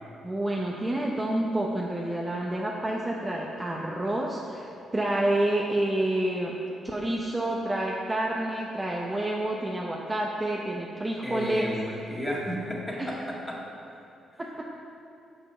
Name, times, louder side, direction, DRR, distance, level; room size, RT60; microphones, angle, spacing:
voice 1, 0.2-6.6 6.8-11.8 13.0-13.2 14.4-14.5, right 1 dB, 15° right, -2 dB, 0.7 m, -28 dB
voice 2, 11.2-13.6, equal, 5° left, -3 dB, 1.7 m, -33 dB
8.5 x 5.1 x 5.5 m, 2.7 s
cardioid pair, 90°, 0 cm